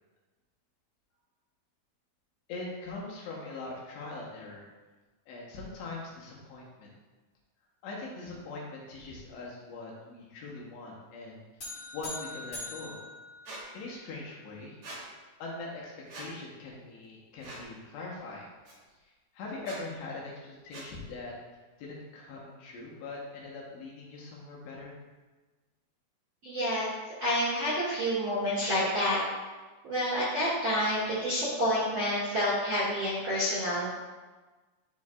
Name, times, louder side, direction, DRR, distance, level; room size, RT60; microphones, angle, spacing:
voice 1, 2.5-4.7 5.3-6.9 7.8-11.4 11.9-13.0 13.7-14.8 15.4-18.5 19.3-21.3 21.8-24.9, left 3 dB, 75° left, -4 dB, 3.1 m, -42 dB
sound 1, 11.6-14.1, left 2 dB, 45° left, 2.2 m, -42 dB
Squeak, 13.4-13.6 14.8-15.0 16.1-16.3 17.4-17.7 18.6-18.7 19.6-19.8 20.7-20.9, right 1 dB, 80° right, 1.2 m, -43 dB
voice 2, 26.4-26.9 27.2-29.2 29.8-33.9, equal, 50° right, -10 dB, 1.6 m, -28 dB
10.5 x 4.6 x 2.4 m, 1.3 s
omnidirectional pair, 5.3 m